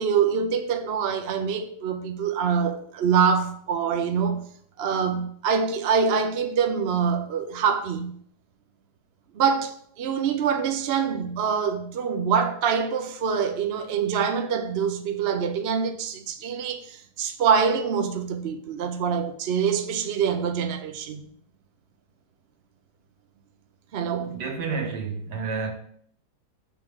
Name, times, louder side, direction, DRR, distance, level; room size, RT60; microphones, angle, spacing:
voice 1, 0.0-4.4 4.8-8.1 9.3-21.3 23.9-24.4, right 6 dB, 60° right, 0.7 m, -25 dB
voice 2, 24.2-25.7, right 5 dB, 75° right, 1.8 m, -30 dB
6.6 x 3.7 x 6.1 m
omnidirectional pair, 1.8 m